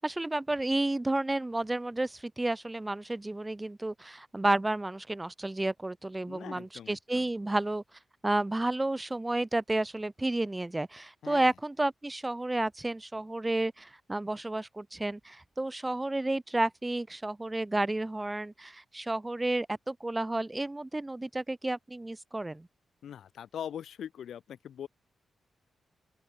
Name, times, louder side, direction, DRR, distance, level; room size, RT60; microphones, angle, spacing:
voice 1, 0.0-7.8 8.2-22.7, right 2 dB, 10° right, 1.9 m, -31 dB
voice 2, 6.3-7.3 11.2-11.5 23.0-24.9, left 9 dB, 80° left, 5.9 m, -42 dB
open air
wide cardioid pair, 165°, 0 cm